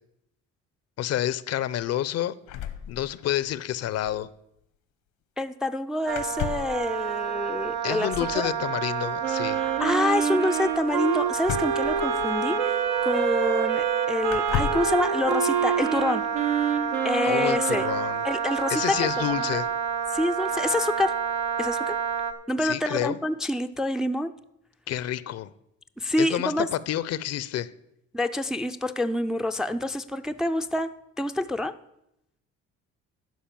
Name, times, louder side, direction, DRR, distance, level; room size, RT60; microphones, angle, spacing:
voice 1, 1.0-2.4 2.9-4.3 7.8-9.6 17.2-18.2 18.7-19.7 22.6-23.2 24.9-25.5 26.2-27.7, left 12 dB, 55° left, 18 dB, 0.5 m, -29 dB
sound 1, 2.5-3.5 3.8-3.9 4.1-4.3 6.1-6.8 8.1-8.5 11.4-12.6 13.4-13.5 14.3-15.0, left 9 dB, 85° left, 1.0 m, -33 dB
voice 2, 5.4-8.5 9.6-16.3 17.0-17.9 18.2-19.5 20.1-21.1 21.6-22.0 22.5-24.3 26.0-26.7 28.1-30.9 31.2-31.7, left 1 dB, ahead, 8 dB, 0.4 m, -27 dB
Wind instrument woodwind instrument, 6.1-22.3, right 7 dB, 70° right, 1.0 m, -30 dB
Wind instrument woodwind instrument 2, 9.2-18.1, right 7 dB, 85° right, 1.2 m, -27 dB
11.5 x 5.1 x 7.4 m, 0.81 s
cardioid pair, 105°, 31 cm